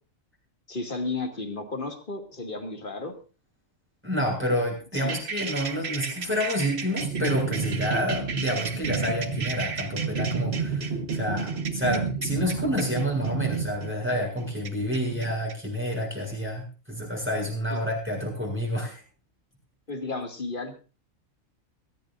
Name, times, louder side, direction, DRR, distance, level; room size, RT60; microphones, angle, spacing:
voice 1, 0.7-3.1 4.9-5.2 17.7-17.8 19.9-20.7, left 3 dB, 40° left, 4 dB, 2.5 m, -33 dB
voice 2, 4.0-19.0, equal, 10° right, -2 dB, 7.2 m, -29 dB
sound 1, 5.0-15.5, right 5 dB, 50° right, 1.5 m, -31 dB
23.0 x 14.5 x 2.6 m, 0.35 s
omnidirectional pair, 1.4 m